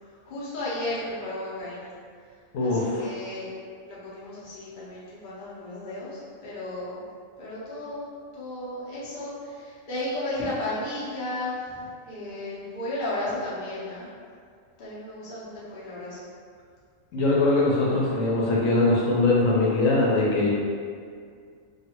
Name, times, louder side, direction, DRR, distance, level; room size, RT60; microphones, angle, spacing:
voice 1, 0.2-1.9 2.6-3.5 3.9-7.0 7.4-14.1 14.8-16.2, left 1 dB, 45° left, -9 dB, 0.9 m, -34 dB
voice 2, 2.5-3.1 17.1-20.5, left 2 dB, 80° left, -5 dB, 1.0 m, -22 dB
3.2 x 2.4 x 2.9 m, 2.1 s
omnidirectional pair, 1.4 m